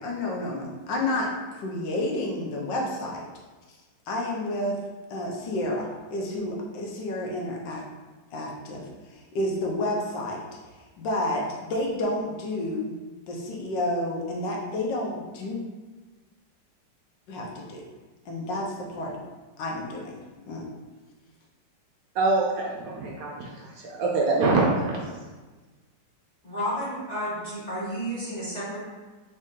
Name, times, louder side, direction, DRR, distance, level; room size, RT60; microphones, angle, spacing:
voice 1, 0.0-3.2 4.1-4.8 5.1-7.8 8.3-10.4 11.0-12.9 13.3-15.6 17.3-17.8 18.3-19.2 19.6-20.2 20.5-20.7, left 1 dB, 80° left, -1 dB, 1.4 m, -30 dB
voice 2, 22.1-25.0, right 3 dB, 75° right, -2 dB, 0.8 m, -25 dB
voice 3, 26.4-28.8, equal, 30° left, -8 dB, 0.8 m, -31 dB
3.6 x 2.7 x 3.6 m, 1.3 s
omnidirectional pair, 2.0 m